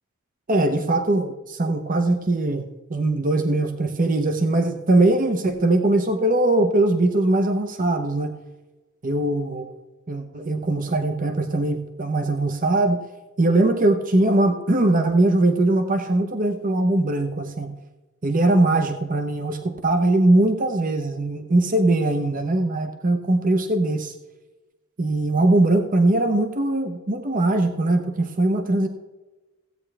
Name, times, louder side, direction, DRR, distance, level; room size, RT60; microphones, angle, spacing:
voice 1, 0.5-8.3 9.0-9.7 10.1-13.0 13.4-17.7 18.2-24.1 25.0-28.9, right 2 dB, 40° right, 7 dB, 0.8 m, -21 dB
15.5 x 8.5 x 3.3 m, 1.1 s
head